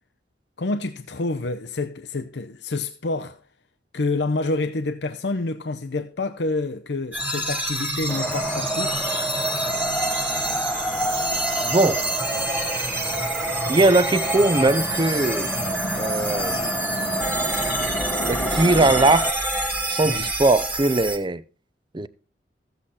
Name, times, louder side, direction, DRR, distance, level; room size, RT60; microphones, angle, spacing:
voice 1, 0.6-3.4 3.9-9.0 20.0-20.3, left 3 dB, 75° left, 0.7 m, -28 dB
sound 1, 7.1-21.2, right 2 dB, 10° right, 1.6 m, -27 dB
Wind, 8.1-19.3, equal, 10° left, 0.8 m, -30 dB
sound 2, 9.9-19.1, right 2 dB, 70° right, 1.2 m, -38 dB
voice 2, 11.6-12.0 13.7-15.5 16.0-16.6 18.2-19.5 19.9-21.4 21.9-22.1, right 2 dB, 25° right, 0.6 m, -20 dB
14.0 x 8.2 x 4.2 m
head